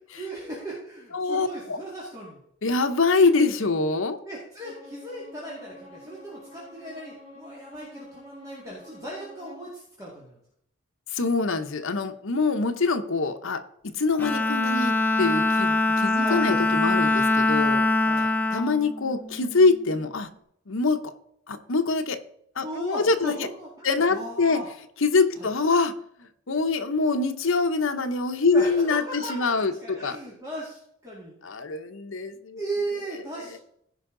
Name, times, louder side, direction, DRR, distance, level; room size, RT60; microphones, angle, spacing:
voice 1, 0.2-2.4 4.2-10.3 16.1-16.8 18.0-18.3 22.6-24.7 25.4-25.5 28.5-31.4 32.6-33.6, right 1 dB, 15° right, -5 dB, 2.0 m, -37 dB
voice 2, 1.1-1.8 2.6-4.2 11.1-17.9 18.5-20.3 20.7-21.1 21.5-22.2 22.6-23.5 23.8-24.6 25.0-25.9 26.5-30.2 31.4-32.6 33.5-33.6, left 3 dB, 70° left, 7 dB, 0.8 m, -24 dB
Bowed string instrument, 4.6-9.7, left 1 dB, 25° left, 3.1 m, -48 dB
Bowed string instrument 2, 14.2-19.7, left 2 dB, 10° left, 0.7 m, -23 dB
15.0 x 5.5 x 3.8 m, 0.71 s
head